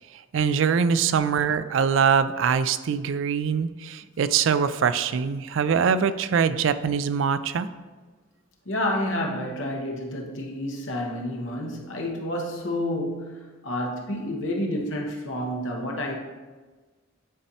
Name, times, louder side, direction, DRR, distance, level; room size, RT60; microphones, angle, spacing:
voice 1, 0.3-7.7, right 6 dB, 75° right, 13 dB, 0.3 m, -23 dB
voice 2, 8.6-16.1, left 1 dB, 75° left, 0 dB, 1.1 m, -29 dB
9.9 x 4.1 x 2.8 m, 1.3 s
head